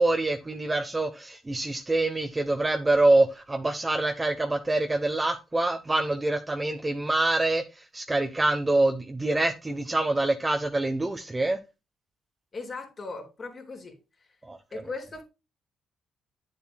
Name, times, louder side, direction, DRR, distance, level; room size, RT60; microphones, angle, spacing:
voice 1, 0.0-11.6 14.5-14.6, right 2 dB, 20° right, 1.0 m, -25 dB
voice 2, 12.5-14.0 14.7-15.2, left 3 dB, 40° left, 3.5 m, -38 dB
10.0 x 7.2 x 2.3 m
cardioid pair, 90°, 0 cm